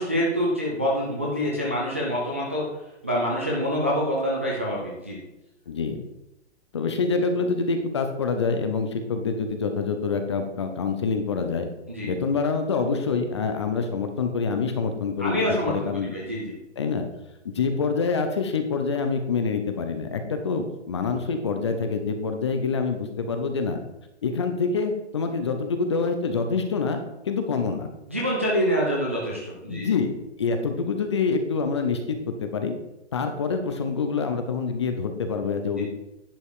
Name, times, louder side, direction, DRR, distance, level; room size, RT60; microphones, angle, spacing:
voice 1, 0.0-2.7 3.0-5.2 11.9-12.1 15.2-16.5 28.1-29.9, equal, 10° right, -5 dB, 0.4 m, -26 dB
voice 2, 5.7-6.0 6.7-11.7 12.0-15.4 15.7-16.1 16.8-17.1 17.5-23.8 24.2-27.0 27.2-27.9 29.7-32.8 33.1-35.9, left 5 dB, 25° left, 6 dB, 0.7 m, -26 dB
10.5 x 5.3 x 4.7 m, 0.92 s
hypercardioid pair, 175°, 34 cm